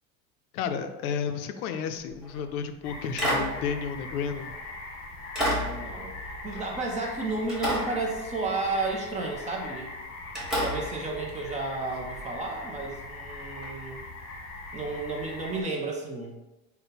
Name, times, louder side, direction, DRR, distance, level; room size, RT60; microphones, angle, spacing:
voice 1, 0.5-4.5, left 6 dB, 90° left, 8 dB, 0.5 m, -32 dB
sound 1, 2.1-2.4 3.2-4.7 5.4-7.2 7.5-8.7 9.4-9.6 10.4-12.2 13.6-13.7, equal, ahead, 1.2 m, -32 dB
sound 2, 2.8-15.6, left 2 dB, 30° left, 0.8 m, -41 dB
voice 2, 5.5-6.2 6.4-9.9 10.6-14.0 14.7-16.4, right 3 dB, 15° right, 0 dB, 0.5 m, -32 dB
3.8 x 2.2 x 4.0 m, 1.1 s
supercardioid pair, 125°, 42 cm